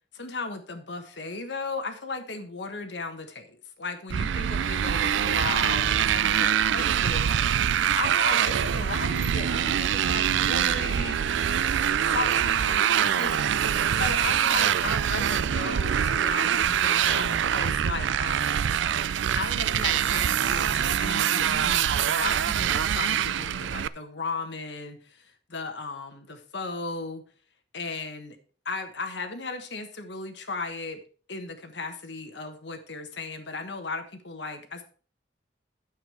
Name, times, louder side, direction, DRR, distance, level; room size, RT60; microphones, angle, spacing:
voice 1, 0.1-7.3 7.9-11.2 11.8-13.3 14.0-18.6 19.3-27.2 27.7-28.4 28.6-31.0 31.3-34.8, left 3 dB, 70° left, 6 dB, 1.3 m, -36 dB
Motorcycle, 4.1-23.9, right 9 dB, 85° right, 0.4 m, -24 dB
9.4 x 7.4 x 4.8 m, 0.41 s
head